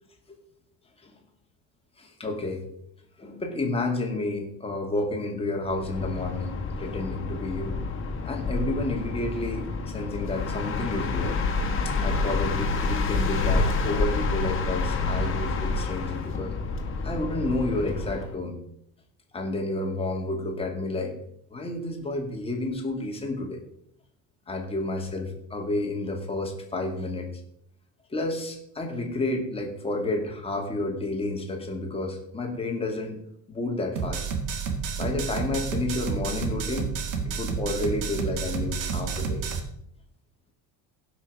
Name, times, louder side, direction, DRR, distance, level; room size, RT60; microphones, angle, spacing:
voice 1, 2.0-2.7 3.2-7.8 8.3-11.4 11.8-16.5 17.0-18.6 19.3-21.1 21.5-23.6 24.5-27.3 28.1-34.3 35.0-36.9 37.3-39.4, left 2 dB, 15° left, 2 dB, 2.2 m, -30 dB
sound 1, 5.7-18.4, left 3 dB, 35° left, 2.0 m, -28 dB
sound 2, 34.0-39.6, right 5 dB, 70° right, 1.8 m, -30 dB
16.5 x 6.1 x 4.8 m, 0.72 s
cardioid pair, 145°, 34 cm